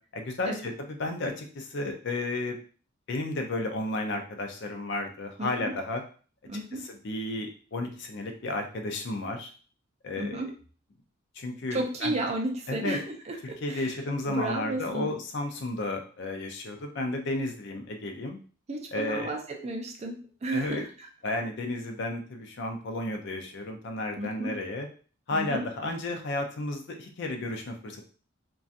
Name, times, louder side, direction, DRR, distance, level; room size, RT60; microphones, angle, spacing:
voice 1, 0.1-2.6 3.1-6.0 6.7-9.5 10.0-10.4 11.3-12.1 12.7-13.0 13.4-18.4 18.9-19.3 20.5-20.8 21.2-24.9 25.3-28.0, left 2 dB, 55° left, 4 dB, 0.5 m, -33 dB
voice 2, 5.4-5.7 6.5-6.9 10.2-10.5 11.7-13.9 14.3-15.1 18.7-21.1 24.2-24.6 25.3-25.7, right 2 dB, 30° right, 2 dB, 0.4 m, -33 dB
2.7 x 2.2 x 2.4 m, 0.39 s
head